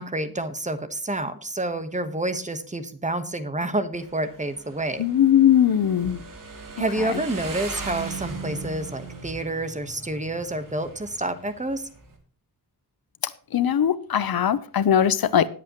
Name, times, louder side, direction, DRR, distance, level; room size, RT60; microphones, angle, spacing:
voice 1, 0.0-5.1 6.8-11.9, right 1 dB, 20° right, 1.2 m, -29 dB
Motorcycle, 3.9-12.2, right 4 dB, 55° right, 2.9 m, -39 dB
voice 2, 5.0-6.2 7.0-7.1 13.5-15.5, left 9 dB, 70° left, 0.8 m, -20 dB
19.5 x 8.1 x 3.0 m
wide cardioid pair, 140°, 37 cm